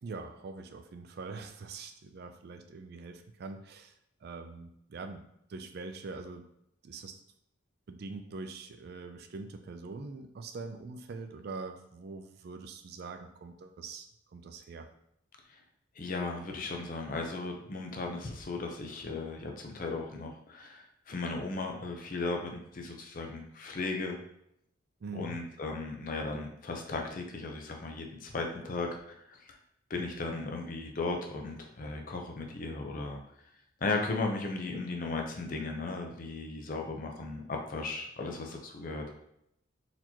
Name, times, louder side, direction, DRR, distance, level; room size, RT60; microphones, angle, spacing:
voice 1, 0.0-3.9 4.2-5.2 5.5-6.5 6.8-7.2 7.9-14.1 14.3-14.9 25.0-25.4, right 3 dB, 55° right, 7 dB, 0.4 m, -43 dB
voice 2, 16.0-24.2 25.1-29.6 29.9-33.2 33.8-39.1, left 3 dB, 45° left, 2 dB, 0.5 m, -36 dB
4.1 x 2.9 x 2.8 m, 0.76 s
head